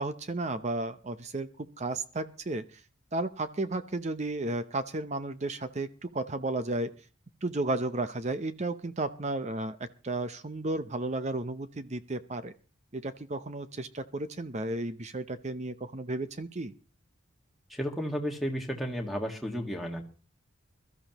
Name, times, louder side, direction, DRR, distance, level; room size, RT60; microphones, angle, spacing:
voice 1, 0.0-2.6 3.1-6.9 7.4-12.5 12.9-16.7, right 2 dB, 35° right, 11 dB, 0.7 m, -33 dB
voice 2, 17.7-20.0, equal, ahead, 3 dB, 1.7 m, -33 dB
22.0 x 13.5 x 3.0 m, 0.35 s
head